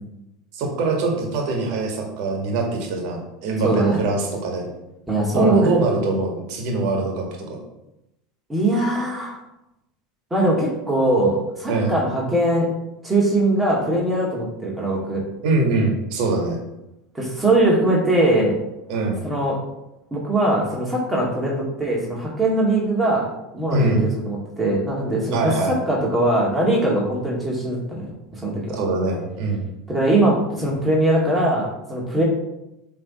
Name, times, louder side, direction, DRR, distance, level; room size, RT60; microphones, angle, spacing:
voice 1, 0.5-4.7 5.3-7.3 11.7-11.9 15.4-16.6 18.9-19.2 23.7-24.1 25.3-25.8 28.8-29.6, right 3 dB, 60° right, 1 dB, 1.8 m, -22 dB
voice 2, 3.6-4.0 5.1-5.7 8.5-9.4 10.3-12.7 13.0-15.2 17.1-18.6 19.2-19.6 20.1-23.9 24.3-28.1 28.3-28.8 29.9-32.2, right 1 dB, 15° right, -4 dB, 2.0 m, -21 dB
7.3 x 3.5 x 4.3 m, 0.90 s
hypercardioid pair, 85°, 0 cm